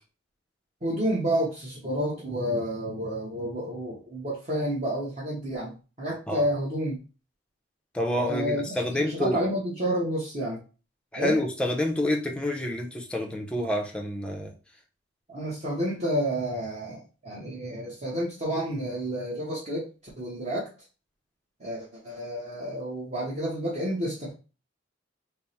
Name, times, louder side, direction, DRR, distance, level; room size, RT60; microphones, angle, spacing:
voice 1, 0.8-7.0 8.2-10.6 11.2-11.3 15.3-19.8 20.2-20.7 21.6-24.3, equal, 35° right, -7 dB, 0.9 m, -30 dB
voice 2, 7.9-9.4 11.1-14.5, left 1 dB, 5° left, 1 dB, 0.5 m, -28 dB
3.4 x 2.0 x 4.1 m, 0.34 s
head